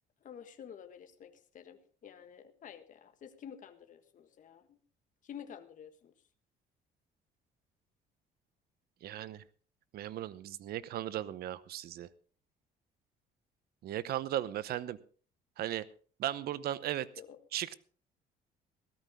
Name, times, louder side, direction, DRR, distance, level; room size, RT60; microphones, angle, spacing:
voice 1, 0.2-4.8 5.2-6.1 17.2-17.4, left 8 dB, 50° left, 8 dB, 1.5 m, -50 dB
voice 2, 9.0-9.4 9.9-12.1 13.8-15.0 15.6-15.8 16.2-17.1 17.5-17.7, right 12 dB, 65° right, 17 dB, 0.9 m, -36 dB
17.0 x 13.5 x 3.6 m, 0.42 s
cardioid pair, 110°, 17 cm